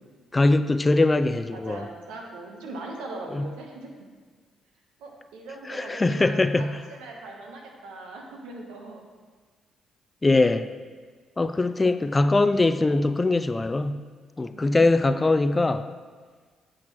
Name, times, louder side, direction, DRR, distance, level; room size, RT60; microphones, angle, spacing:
voice 1, 0.3-1.9 3.3-3.5 5.6-6.8 10.2-10.7 11.4-14.0 14.4-15.9, left 2 dB, 25° left, 11 dB, 0.3 m, -22 dB
voice 2, 1.5-4.1 5.0-9.0 14.4-15.2, right 2 dB, 85° right, 1 dB, 1.0 m, -40 dB
8.7 x 5.9 x 3.1 m, 1.5 s
supercardioid pair, 60°, 0 cm